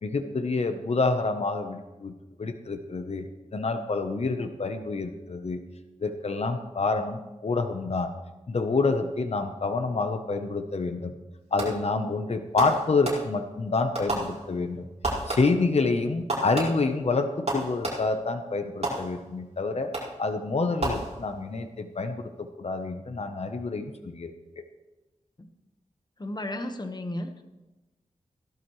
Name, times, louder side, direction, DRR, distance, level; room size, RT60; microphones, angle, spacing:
voice 1, 0.0-5.6 6.0-8.1 8.5-11.1 11.5-14.9 15.3-19.9 20.2-24.6, left 3 dB, 55° left, 7 dB, 0.8 m, -28 dB
Fireworks, 11.6-12.0 12.6-13.6 13.9-14.7 15.0-15.7 16.3-18.3 18.8-19.5 19.9-20.3 20.8-21.6, right 2 dB, 55° right, 4.9 m, -32 dB
voice 2, 26.2-27.4, left 1 dB, 35° left, 7 dB, 1.3 m, -34 dB
17.0 x 11.5 x 3.2 m, 1.1 s
wide cardioid pair, 70°, 13 cm